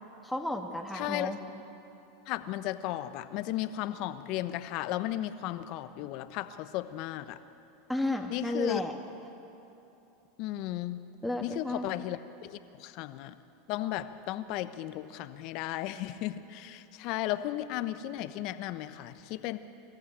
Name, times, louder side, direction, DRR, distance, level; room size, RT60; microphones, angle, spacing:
voice 1, 0.2-1.4 7.9-8.9 11.2-11.9, left 1 dB, ahead, 1 dB, 1.6 m, -32 dB
voice 2, 0.9-1.3 2.3-7.4 8.3-8.8 10.4-11.0 11.4-13.4 13.7-19.6, left 14 dB, 55° left, 12 dB, 1.0 m, -35 dB
23.0 x 14.0 x 9.0 m, 2.9 s
hypercardioid pair, 105°, 0 cm